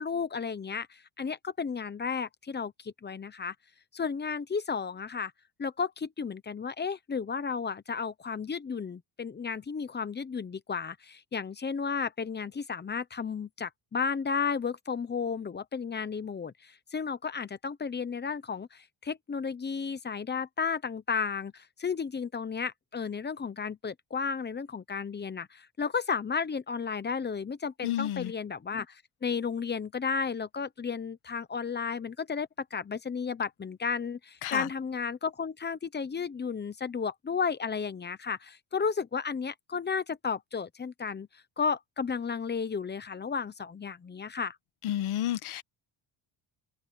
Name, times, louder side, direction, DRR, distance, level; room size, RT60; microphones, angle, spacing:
voice 1, 0.0-3.5 3.9-5.3 5.6-41.3 41.6-44.6, left 5 dB, 20° left, 0.9 m, -33 dB
voice 2, 27.8-28.3 34.4-34.7 44.8-45.6, left 12 dB, 80° left, 1.5 m, -31 dB
cardioid pair, 160°, 48 cm